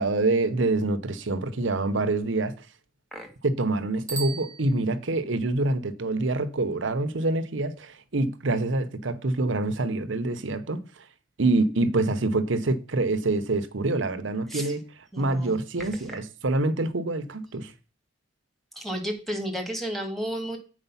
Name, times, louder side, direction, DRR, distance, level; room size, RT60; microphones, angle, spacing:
voice 1, 0.0-2.6 3.4-10.8 11.4-14.8 15.2-17.7, right 2 dB, 70° right, 0.8 m, -26 dB
Bicycle bell, 4.0-5.4, right 5 dB, 15° right, 1.3 m, -38 dB
voice 2, 15.1-15.6 18.8-20.6, equal, ahead, 1.8 m, -32 dB
8.1 x 4.9 x 5.6 m
head